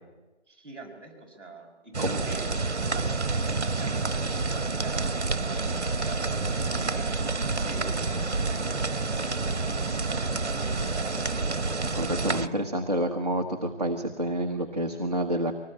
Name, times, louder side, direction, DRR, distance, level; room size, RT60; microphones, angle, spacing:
voice 1, 0.5-2.5 2.8-3.4 3.6-4.1 4.5-5.1 5.4-5.6 6.0-7.2 7.6-11.3, right 2 dB, 20° right, -8 dB, 5.6 m, -43 dB
sound 1, 1.9-12.5, right 3 dB, 70° right, 1.4 m, -28 dB
voice 2, 11.9-15.5, right 1 dB, 35° right, 2 dB, 1.1 m, -28 dB
24.5 x 19.5 x 8.8 m, 1.2 s
figure-of-eight pair, 180°, 36 cm